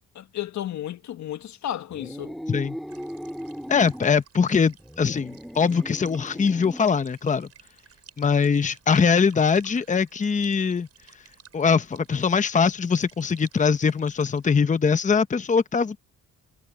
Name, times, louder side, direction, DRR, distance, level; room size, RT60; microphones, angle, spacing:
voice 1, 0.1-2.4, left 11 dB, 65° left, 1.3 m, -33 dB
sound 1, 1.9-4.2 4.8-7.0, equal, ahead, 2.8 m, -38 dB
sound 2, 2.9-14.5, right 8 dB, 55° right, 6.7 m, -54 dB
voice 2, 3.7-7.5 8.2-10.9 11.5-16.0, left 5 dB, 25° left, 0.9 m, -22 dB
cardioid pair, 90°, 30 cm